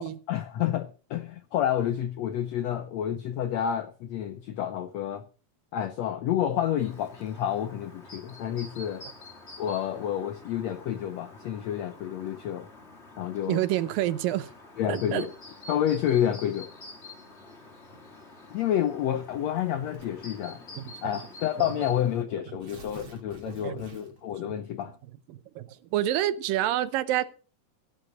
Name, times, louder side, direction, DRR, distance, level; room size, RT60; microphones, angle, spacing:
voice 1, 0.0-5.3 5.7-9.1 9.6-12.7 13.2-13.6 14.8-15.3 15.7-16.7 18.5-20.6 21.0-25.0, left 10 dB, 80° left, 1.5 m, -29 dB
Chirp tweet, 6.8-22.2, left 2 dB, 25° left, 1.8 m, -48 dB
voice 2, 13.5-14.5 14.9-15.3 21.0-21.1 23.5-23.8 25.3-27.2, right 13 dB, 80° right, 2.6 m, -28 dB
Tearing, 19.9-20.3 21.2-21.3 21.6-21.7 22.4-24.3, right 5 dB, 45° right, 3.0 m, -49 dB
16.5 x 6.4 x 6.3 m
omnidirectional pair, 4.0 m